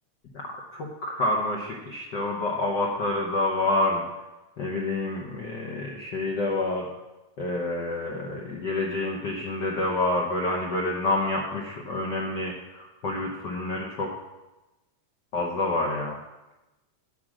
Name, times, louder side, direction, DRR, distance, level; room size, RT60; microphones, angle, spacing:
voice 1, 0.7-4.0 4.6-6.9 7.4-14.1 15.3-16.2, left 2 dB, 80° left, -1 dB, 0.9 m, -28 dB
10.0 x 4.9 x 7.5 m, 1.0 s
omnidirectional pair, 3.3 m